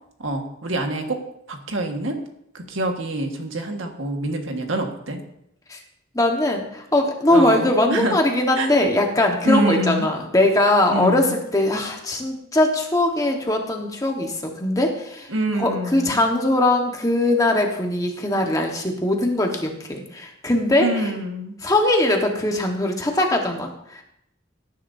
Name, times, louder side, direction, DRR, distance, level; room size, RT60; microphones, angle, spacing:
voice 1, 0.2-1.2 1.5-2.2 2.5-5.2 7.3-8.1 8.6-8.7 9.4-10.1 10.9-11.3 15.3-16.2 20.8-21.5, right 1 dB, 85° right, 3 dB, 1.6 m, -26 dB
voice 2, 6.1-21.1 21.6-24.0, left 1 dB, 15° left, 2 dB, 1.3 m, -21 dB
18.0 x 10.0 x 2.7 m, 0.77 s
head